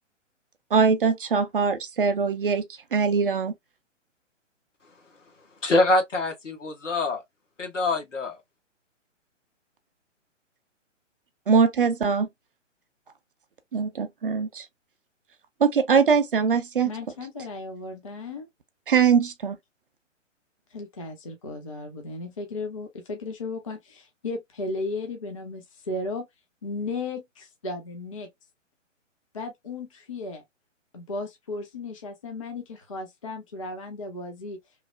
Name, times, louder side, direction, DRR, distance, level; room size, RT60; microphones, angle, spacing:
voice 1, 0.7-3.5 11.5-12.3 13.7-14.7 15.6-16.9 18.9-19.6, right 6 dB, 45° right, 0.5 m, -22 dB
voice 2, 5.6-7.2 7.6-8.4, left 2 dB, 70° left, 1.1 m, -24 dB
voice 3, 16.8-18.5 20.7-26.3 26.6-28.3 29.3-30.4 30.9-34.6, left 3 dB, 30° left, 0.4 m, -35 dB
3.0 x 2.0 x 2.4 m
figure-of-eight pair, 130°, 38 cm